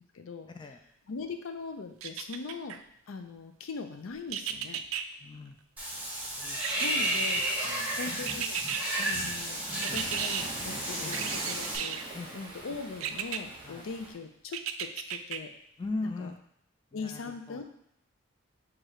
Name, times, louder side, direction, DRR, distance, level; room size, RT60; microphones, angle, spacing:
voice 1, 0.1-0.5 1.1-2.8 3.1-4.8 6.8-7.4 8.0-8.6 9.0-15.5 16.0-16.3 16.9-17.6, left 4 dB, 85° left, 6 dB, 0.5 m, -40 dB
sound 1, 2.0-2.8 4.3-5.0 6.6-7.6 8.3-8.8 9.8-10.5 11.1-12.1 13.0-13.4 14.5-15.4 15.9-16.0, right 9 dB, 90° right, 0.3 m, -34 dB
voice 2, 5.2-5.6 6.4-7.2 7.6-8.0 11.0-11.3 12.1-12.4 13.6-13.9 15.8-16.4 16.9-17.6, left 2 dB, 25° left, 4 dB, 0.3 m, -40 dB
Water / Bathtub (filling or washing), 5.8-11.8, right 1 dB, 10° right, 1.2 m, -32 dB
Waves surf, 9.0-14.1, right 2 dB, 25° right, 0.9 m, -43 dB
6.4 x 2.4 x 3.1 m, 0.74 s
head